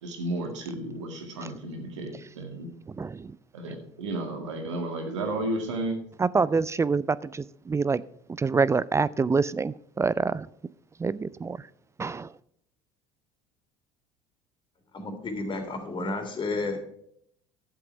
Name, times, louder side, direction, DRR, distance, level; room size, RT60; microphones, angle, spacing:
voice 1, 0.0-2.7 3.5-6.0, right 2 dB, 85° right, 4 dB, 2.2 m, -33 dB
voice 2, 2.9-3.4 6.2-8.0 8.3-10.5 11.0-11.7 12.0-12.3, right 4 dB, 20° right, 19 dB, 0.4 m, -26 dB
voice 3, 14.9-16.8, left 3 dB, 30° left, 3 dB, 3.2 m, -31 dB
11.5 x 7.7 x 4.6 m, 0.68 s
hypercardioid pair, 70°, 15 cm